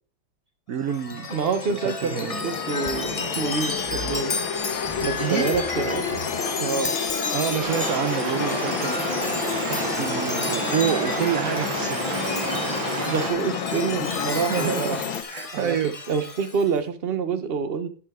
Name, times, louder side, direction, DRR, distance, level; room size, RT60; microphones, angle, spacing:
voice 1, 0.7-1.3 1.7-2.4 5.2-5.7 7.1-9.0 9.4-12.0 14.3-15.9, right 9 dB, 60° right, 10 dB, 0.9 m, -28 dB
Chime, 0.8-16.7, left 4 dB, 35° left, 0.6 m, -32 dB
voice 2, 1.3-2.1 2.4-4.3 5.0-6.3 6.6-6.9 13.0-15.0 15.5-17.9, right 5 dB, 35° right, 10 dB, 1.1 m, -27 dB
sound 1, 2.0-15.2, left 7 dB, 75° left, 1.8 m, -31 dB
Stream, 7.6-13.3, right 6 dB, 75° right, 2.2 m, -31 dB
11.0 x 9.8 x 3.7 m, 0.40 s
omnidirectional pair, 2.2 m